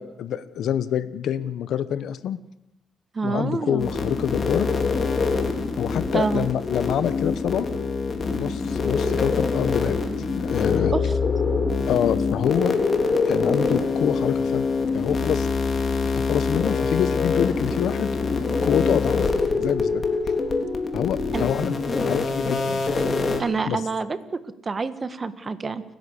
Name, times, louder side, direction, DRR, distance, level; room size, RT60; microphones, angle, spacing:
voice 1, 0.0-2.4 3.2-4.7 5.8-7.7 8.3-10.9 11.9-12.8 13.2-14.7 14.9-15.5 16.1-18.1 18.6-20.0 20.9-21.8 22.1-22.9 23.7-23.8, left 9 dB, 70° left, 14 dB, 1.1 m, -26 dB
voice 2, 3.1-3.9 6.1-6.5 10.9-11.2 21.3-21.5 23.4-25.8, right 4 dB, 35° right, 12 dB, 1.7 m, -27 dB
sound 1, 3.8-23.4, left 4 dB, 40° left, 3.5 m, -24 dB
30.0 x 11.0 x 8.4 m, 0.83 s
cardioid pair, 90°, 0 cm